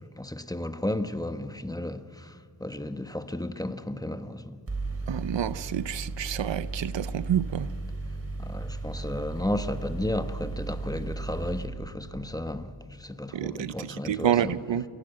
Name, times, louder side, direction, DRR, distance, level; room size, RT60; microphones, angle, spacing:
voice 1, 0.0-4.6 8.4-12.7 13.0-14.6, left 1 dB, 10° left, 1.1 m, -33 dB
Mechanical fan, 4.7-11.7, right 3 dB, 35° right, 3.8 m, -35 dB
voice 2, 5.1-7.7 13.3-14.8, right 10 dB, 90° right, 0.7 m, -28 dB
28.0 x 19.5 x 7.8 m
wide cardioid pair, 70°, 43 cm